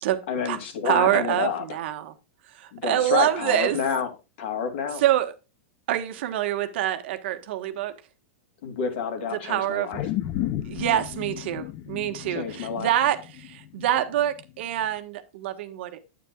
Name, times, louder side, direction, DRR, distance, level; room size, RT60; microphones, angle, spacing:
voice 1, 0.3-1.6 2.7-4.1 4.4-5.0 8.6-10.0 12.3-12.9, left 6 dB, 60° left, 2.9 m, -28 dB
voice 2, 0.8-2.1 2.5-3.8 5.0-5.3 5.9-8.0 9.3-10.0 10.6-16.0, right 12 dB, 60° right, 1.4 m, -26 dB
sound 1, 9.9-14.4 14.8-14.9, left 13 dB, 35° left, 0.7 m, -33 dB
9.4 x 9.2 x 2.4 m
supercardioid pair, 160°, 7 cm